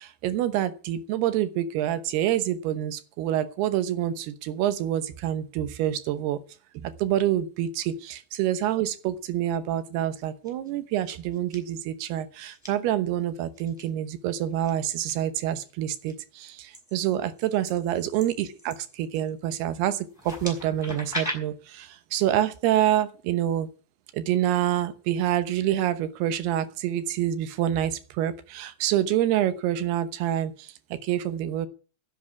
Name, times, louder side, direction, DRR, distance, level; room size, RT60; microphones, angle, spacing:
voice 1, 0.0-6.4 6.7-23.7 24.1-31.7, right 12 dB, 75° right, 12 dB, 2.9 m, -27 dB
sound 1, 10.2-10.7 11.1-11.6 12.4-12.7 13.6-13.8 14.6-15.1 15.6-16.1 16.7-19.4 20.1-21.3, equal, 5° left, 4.3 m, -38 dB
11.0 x 7.6 x 9.5 m, 0.37 s
omnidirectional pair, 4.9 m